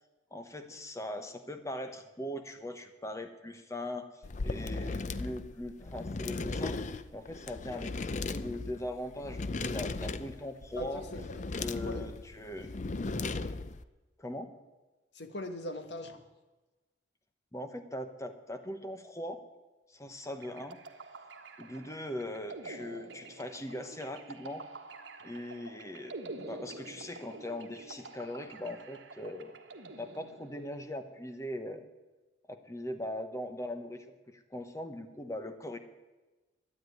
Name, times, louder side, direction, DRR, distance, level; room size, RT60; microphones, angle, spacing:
voice 1, 0.3-4.1 4.4-6.8 7.1-11.1 11.5-12.7 14.2-14.5 17.5-19.4 19.9-20.8 21.6-24.7 25.2-29.6 30.0-31.9 32.5-35.8, left 1 dB, 15° left, 8 dB, 1.1 m, -40 dB
sound 1, 4.2-13.8, left 3 dB, 40° left, 0.5 m, -37 dB
voice 2, 10.8-11.6 11.8-12.0 15.1-16.2, left 1 dB, 65° left, 7 dB, 1.4 m, -40 dB
sound 2, 20.4-30.8, right 3 dB, 75° right, 1.4 m, -48 dB
12.5 x 9.8 x 9.2 m, 1.2 s
head